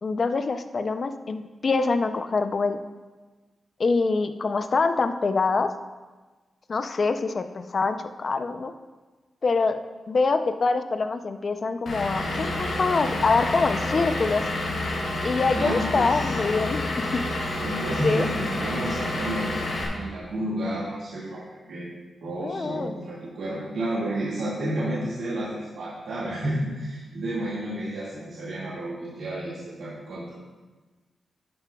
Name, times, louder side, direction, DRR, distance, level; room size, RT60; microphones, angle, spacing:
voice 1, 0.0-2.8 3.8-5.7 6.7-8.7 9.4-9.8 10.1-14.4 15.2-17.2 18.0-18.3 22.4-22.9, left 4 dB, 40° left, 9 dB, 0.5 m, -25 dB
Vehicle / Engine, 11.9-19.9, left 2 dB, 65° left, 2.5 m, -29 dB
voice 2, 15.5-16.3 17.6-19.6 19.9-21.9 22.2-30.3, right 1 dB, 85° right, -8 dB, 2.0 m, -31 dB
11.5 x 9.5 x 2.3 m, 1.3 s
wide cardioid pair, 140°, 0 cm